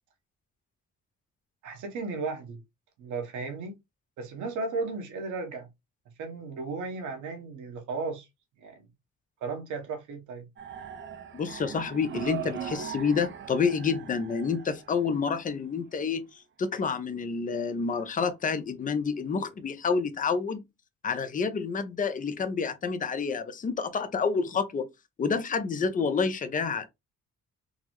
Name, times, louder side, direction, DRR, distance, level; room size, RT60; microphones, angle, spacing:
voice 1, 1.6-2.6 3.0-3.7 4.2-5.7 6.2-8.3 8.6-8.9 9.4-10.5 12.1-12.2, right 4 dB, 80° right, 1.1 m, -35 dB
sound 1, 10.6-15.5, right 9 dB, 40° right, 0.6 m, -39 dB
voice 2, 11.3-16.2 16.6-20.6 21.0-24.9 25.2-26.9, left 5 dB, 25° left, 0.5 m, -28 dB
3.7 x 2.0 x 3.0 m
cardioid pair, 90°, 30 cm